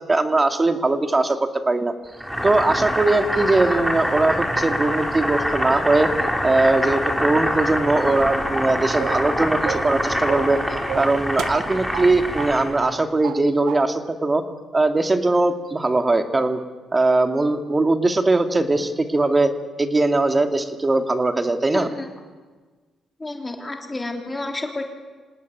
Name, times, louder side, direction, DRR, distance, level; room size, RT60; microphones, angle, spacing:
voice 1, 0.0-1.9 2.4-6.1 6.4-10.6 11.0-14.4 14.7-16.6 16.9-19.5 19.8-21.9, right 2 dB, 25° right, 7 dB, 2.3 m, -20 dB
Boiling, 2.2-12.8, equal, 5° right, 4.4 m, -25 dB
sound 1, 9.0-9.3 9.6-9.9 10.3-10.6 10.9-12.1 12.4-12.5 12.8-13.4 13.7-13.8, right 10 dB, 75° right, 1.1 m, -31 dB
voice 2, 21.7-22.1 23.2-24.8, left 2 dB, 20° left, 3 dB, 3.3 m, -30 dB
26.0 x 18.5 x 9.5 m, 1.4 s
cardioid pair, 90°, 0 cm